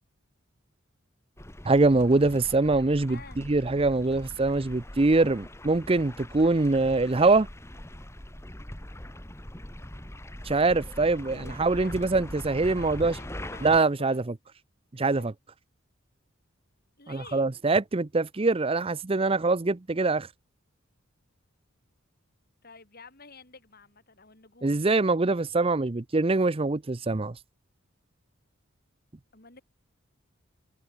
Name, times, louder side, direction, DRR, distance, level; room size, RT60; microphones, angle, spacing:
sound 1, 1.4-13.8, left 1 dB, 15° left, 1.9 m, -42 dB
voice 1, 1.6-7.5 10.4-13.2 13.6-14.2 14.9-15.3 17.1-20.3 24.6-27.3, right 3 dB, 25° right, 0.6 m, -24 dB
voice 2, 3.0-3.4 11.2-12.0 12.5-14.2 15.1-15.3 17.0-17.5 22.6-25.0 29.3-29.6, left 4 dB, 45° left, 4.5 m, -50 dB
head